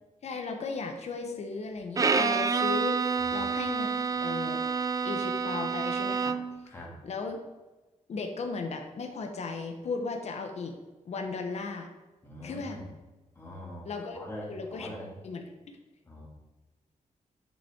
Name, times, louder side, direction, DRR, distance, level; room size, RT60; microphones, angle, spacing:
voice 1, 0.2-4.6 5.0-6.4 7.0-7.4 8.1-10.8 11.0-11.9 12.4-12.8 13.9-14.2 14.5-14.9 15.2-15.4, left 4 dB, 55° left, 4 dB, 1.2 m, -36 dB
Bowed string instrument, 2.0-6.6, right 5 dB, 25° right, 0.4 m, -28 dB
voice 2, 3.2-3.5 6.6-6.9 12.2-12.9 13.3-15.1 16.0-16.3, left 1 dB, 20° left, -4 dB, 2.8 m, -43 dB
11.0 x 5.5 x 4.6 m, 1.2 s
wide cardioid pair, 155°, 13 cm